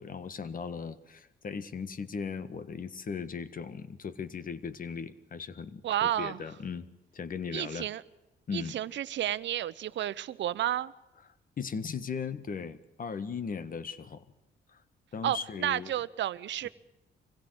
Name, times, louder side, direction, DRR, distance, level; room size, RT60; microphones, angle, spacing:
voice 1, 0.0-6.9 7.1-7.9 8.5-8.8 11.6-14.2 14.7-14.8 15.1-15.9, left 6 dB, 45° left, 14 dB, 1.6 m, -38 dB
voice 2, 5.8-6.4 7.5-8.0 8.5-10.9 15.2-16.7, right 12 dB, 65° right, 16 dB, 0.9 m, -31 dB
25.0 x 16.5 x 8.0 m, 0.97 s
cardioid pair, 90°, 20 cm